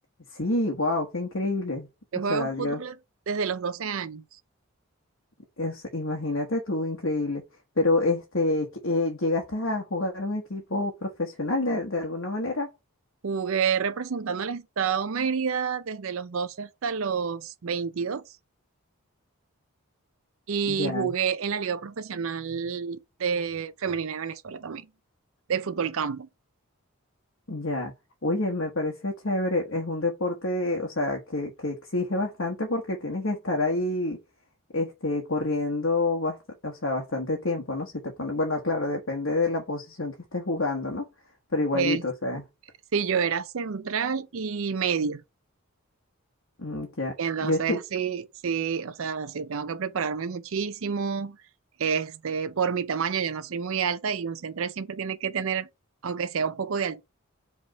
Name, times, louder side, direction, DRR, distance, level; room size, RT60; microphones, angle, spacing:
voice 1, 0.3-1.9 2.3-2.8 5.6-7.4 7.8-12.7 20.7-21.1 27.5-27.9 28.2-34.2 34.7-36.4 36.6-41.1 41.5-42.4 46.6-47.2 47.4-47.8, left 2 dB, 60° left, 1.3 m, -28 dB
voice 2, 2.1-2.9 3.3-4.2 13.2-18.2 20.5-24.9 25.5-26.3 41.7-42.0 42.9-45.2 47.2-51.4 51.8-55.7 56.0-57.0, right 6 dB, 70° right, 0.5 m, -29 dB
5.1 x 3.5 x 5.5 m
head